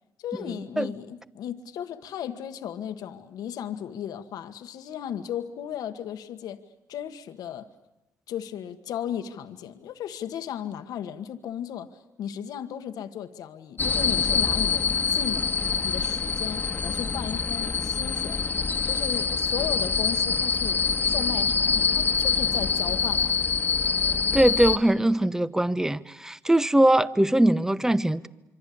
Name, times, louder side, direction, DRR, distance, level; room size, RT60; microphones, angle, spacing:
voice 1, 0.2-6.6 6.9-7.7 8.3-18.4 18.8-23.3, left 9 dB, 80° left, 1.4 m, -35 dB
sound 1, 13.8-24.8, left 6 dB, 30° left, 1.5 m, -25 dB
voice 2, 24.3-28.3, right 1 dB, 10° right, 1.0 m, -21 dB
26.5 x 24.5 x 8.5 m
cardioid pair, 75°, 7 cm